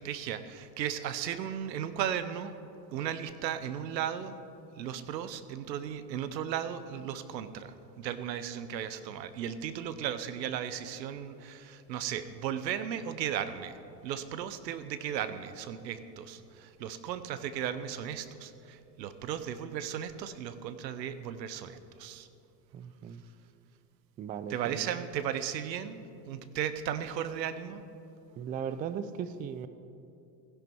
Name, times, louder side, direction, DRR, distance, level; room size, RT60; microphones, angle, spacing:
voice 1, 0.0-2.6 2.9-4.4 4.8-22.3 24.5-27.8, right 9 dB, 80° right, 12 dB, 0.9 m, -36 dB
voice 2, 22.7-23.2 24.2-25.0 28.4-29.7, right 7 dB, 20° right, 13 dB, 0.3 m, -37 dB
15.5 x 11.0 x 4.6 m, 2.8 s
hypercardioid pair, 90°, 50 cm